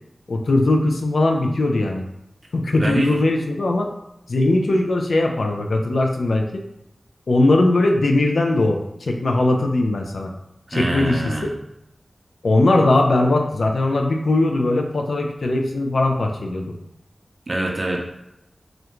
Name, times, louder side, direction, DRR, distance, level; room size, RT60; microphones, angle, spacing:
voice 1, 0.3-2.0 2.5-3.9 4.3-6.6 7.3-10.3 10.7-11.3 12.4-16.7, left 2 dB, 85° left, 2 dB, 0.3 m, -19 dB
voice 2, 2.8-3.1 10.7-11.5 17.5-18.0, right 1 dB, 45° right, 0 dB, 0.5 m, -24 dB
2.4 x 2.1 x 2.9 m, 0.86 s
wide cardioid pair, 80°, 0 cm